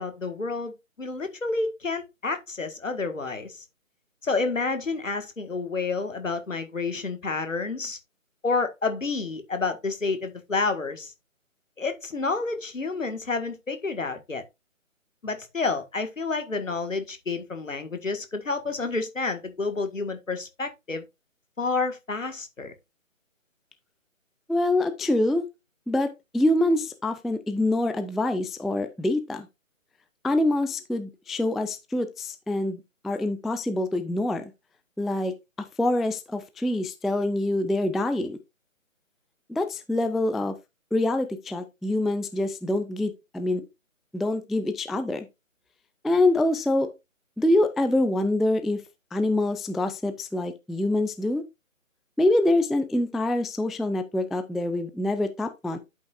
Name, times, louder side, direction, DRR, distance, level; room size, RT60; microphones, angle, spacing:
voice 1, 0.0-3.6 4.2-8.0 8.4-11.1 11.8-14.4 15.2-21.0 21.6-22.7, left 3 dB, 65° left, 1.8 m, -29 dB
voice 2, 24.5-25.5 25.9-29.5 30.2-34.5 35.0-35.3 35.8-38.4 39.5-40.6 40.9-43.7 44.1-45.3 46.0-46.9 47.4-48.8 49.1-51.4 52.2-55.8, left 1 dB, ahead, 0.3 m, -25 dB
12.0 x 5.5 x 2.5 m
figure-of-eight pair, 150°, 41 cm